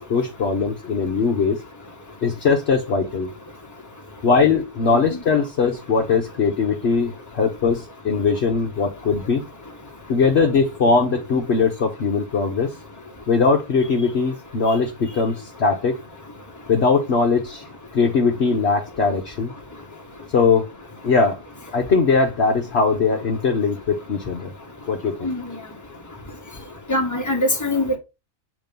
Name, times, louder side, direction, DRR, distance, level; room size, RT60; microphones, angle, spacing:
voice 1, 0.1-1.6 2.2-3.3 4.2-9.4 10.1-12.7 13.3-16.0 16.7-17.6 17.9-19.5 20.3-20.7 21.0-21.4 21.7-24.5 24.9-25.3, left 4 dB, 55° left, 1.0 m, -20 dB
voice 2, 26.9-28.0, left 1 dB, 15° left, 1.3 m, -22 dB
7.4 x 3.0 x 5.1 m
omnidirectional pair, 1.5 m